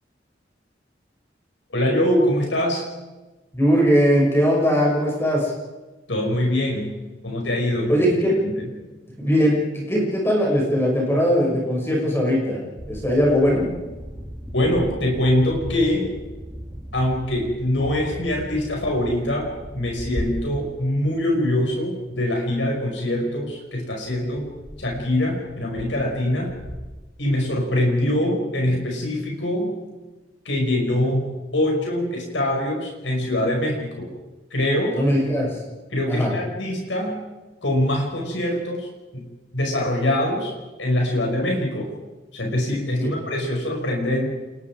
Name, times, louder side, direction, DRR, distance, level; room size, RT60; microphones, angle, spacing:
voice 1, 1.7-2.8 6.1-6.9 7.2-8.1 8.4-8.6 14.5-16.1 16.9-24.5 24.8-26.5 27.2-29.7 30.5-34.1 34.5-35.0 35.9-37.2 37.6-38.9 39.1-39.3 39.5-40.5 40.8-41.9 42.3-44.3, left 1 dB, 85° left, 0 dB, 5.6 m, -23 dB
voice 2, 3.5-5.5 7.9-8.4 9.2-12.6 12.9-13.7 34.9-35.6 36.1-36.3 43.0-43.1, equal, 15° left, -3 dB, 6.2 m, -20 dB
sound 1, 12.8-21.7 22.1-22.5 22.7-22.8 24.0-27.8, equal, 10° right, 2.9 m, -37 dB
28.5 x 21.5 x 4.9 m, 1.2 s
head